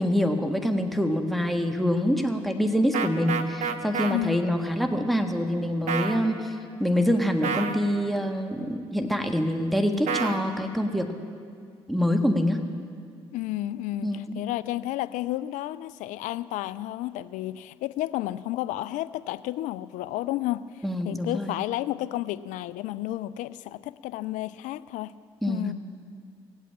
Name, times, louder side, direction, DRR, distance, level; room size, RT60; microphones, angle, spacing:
voice 1, 0.0-6.5 6.8-11.1 11.9-12.6 14.0-14.4 20.8-21.5 25.4-25.7, equal, ahead, 5 dB, 1.5 m, -25 dB
sound 1, 2.9-4.1 5.9-6.2 7.4-7.8 10.1-10.4, right 6 dB, 60° right, 1.1 m, -28 dB
voice 2, 13.3-25.1 25.5-25.7, left 15 dB, 70° left, 16 dB, 0.4 m, -31 dB
17.5 x 8.3 x 8.5 m, 2.2 s
hypercardioid pair, 50°, 13 cm